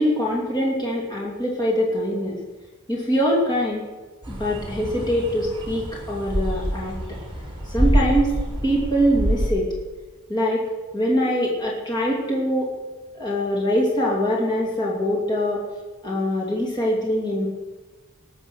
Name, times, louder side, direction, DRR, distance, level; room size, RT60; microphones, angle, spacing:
voice 1, 0.0-2.4 2.9-3.8 4.3-7.0 7.7-8.4 8.6-9.7 10.3-10.6 10.9-12.7 13.2-15.6 16.0-17.5, equal, 20° left, -3 dB, 2.6 m, -23 dB
sound 1, 4.2-9.5, equal, 25° right, 4.1 m, -26 dB
19.5 x 8.0 x 6.3 m, 1.2 s
head